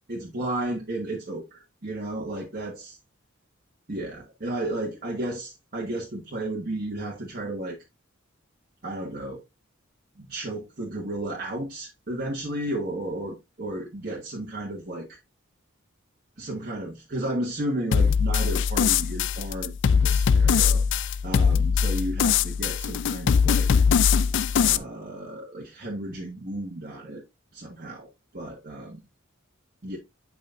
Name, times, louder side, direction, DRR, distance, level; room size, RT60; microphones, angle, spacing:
voice 1, 0.1-3.0 3.9-7.8 8.8-9.4 10.2-15.2 16.4-23.8 24.5-27.2 27.5-28.1 28.3-29.0 29.8-30.0, right 1 dB, 45° right, 1.6 m, -33 dB
sound 1, 17.9-24.8, left 6 dB, 60° left, 0.4 m, -21 dB
7.7 x 6.2 x 2.5 m
head